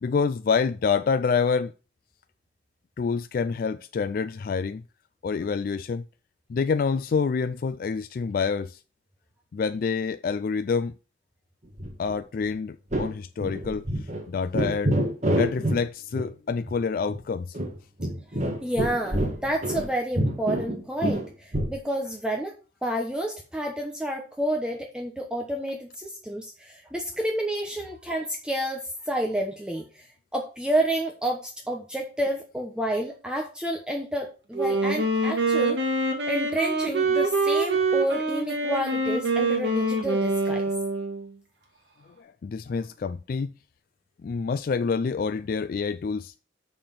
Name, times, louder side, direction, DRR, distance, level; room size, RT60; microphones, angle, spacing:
voice 1, 0.0-1.7 3.0-4.8 5.2-6.0 6.5-8.8 9.5-10.9 12.0-15.0 15.3-17.6 42.2-43.5 44.2-46.3, left 5 dB, 50° left, 0.3 m, -27 dB
sound 1, 11.8-12.2 12.4-12.5 12.9-13.1 13.4-14.2 14.5-15.8 16.1-16.3 16.7-16.8 17.1-17.2 17.5-19.9 20.2-21.8, right 1 dB, 40° right, 1.7 m, -27 dB
voice 2, 18.3-22.5 22.8-30.1 30.3-35.8 36.3-40.6, right 1 dB, 5° right, 1.0 m, -29 dB
Wind instrument woodwind instrument, 34.5-41.3, right 2 dB, 70° right, 2.0 m, -25 dB
6.8 x 5.7 x 5.8 m
head